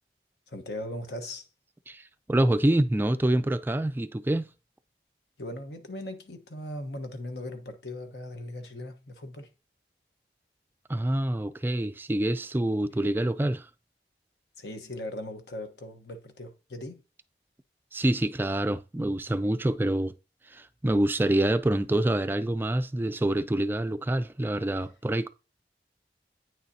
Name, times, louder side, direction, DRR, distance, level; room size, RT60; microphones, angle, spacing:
voice 1, 0.5-1.5 5.4-9.5 14.6-17.0, left 1 dB, 80° left, 1.2 m, -39 dB
voice 2, 1.9-4.5 10.9-13.7 17.9-20.1 20.5-25.3, right 1 dB, 10° right, 0.3 m, -26 dB
9.0 x 6.4 x 2.8 m
head